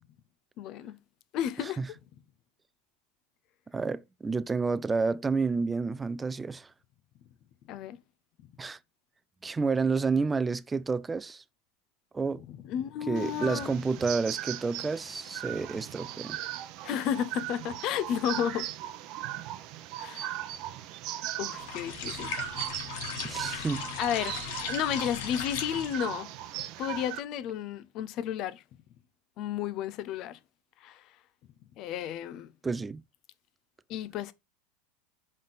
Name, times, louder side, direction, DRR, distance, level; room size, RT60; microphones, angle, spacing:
voice 1, 0.6-1.0 1.3-1.8 7.7-8.0 12.5-13.8 16.8-18.7 20.0-20.4 21.4-22.4 24.0-26.3 26.8-28.6 29.4-30.4 30.8-31.1 31.8-32.5 33.9-34.3, left 10 dB, 50° left, 0.7 m, -32 dB
voice 2, 3.7-6.7 8.6-8.8 9.4-11.4 12.1-12.4 13.1-16.4 23.2-23.8 32.6-33.0, right 4 dB, 15° right, 0.4 m, -30 dB
sound 1, 13.2-27.2, right 13 dB, 55° right, 0.6 m, -38 dB
sound 2, 21.5-26.2, left 8 dB, 70° left, 1.2 m, -38 dB
5.3 x 5.1 x 4.0 m
hypercardioid pair, 95°, 0 cm